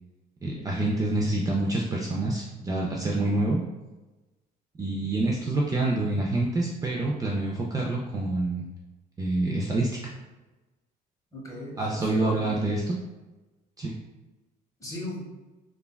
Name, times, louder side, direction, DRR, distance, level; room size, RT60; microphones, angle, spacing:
voice 1, 0.4-3.6 4.8-8.7 9.2-10.1 11.8-12.9 13.8-13.9, right 2 dB, 20° right, -3 dB, 0.4 m, -27 dB
voice 2, 11.3-12.7 14.8-15.2, left 1 dB, 20° left, -4 dB, 1.0 m, -38 dB
3.3 x 2.3 x 2.2 m, 1.1 s
cardioid pair, 110°, 17 cm